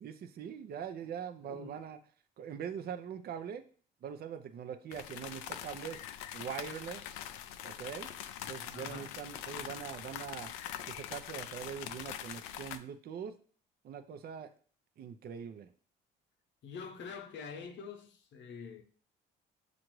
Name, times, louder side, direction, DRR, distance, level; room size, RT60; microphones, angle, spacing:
voice 1, 0.0-2.0 2.4-3.6 4.0-6.0 6.3-7.0 7.6-8.1 8.5-10.5 10.9-13.3 13.8-14.5 15.0-15.7, right 8 dB, 50° right, 0.5 m, -42 dB
voice 2, 1.4-1.9 8.7-9.2 16.6-18.8, left 5 dB, 60° left, 0.8 m, -46 dB
sound 1, 4.9-12.8, left 11 dB, 80° left, 0.4 m, -43 dB
6.6 x 2.5 x 3.0 m
supercardioid pair, 75°, 21 cm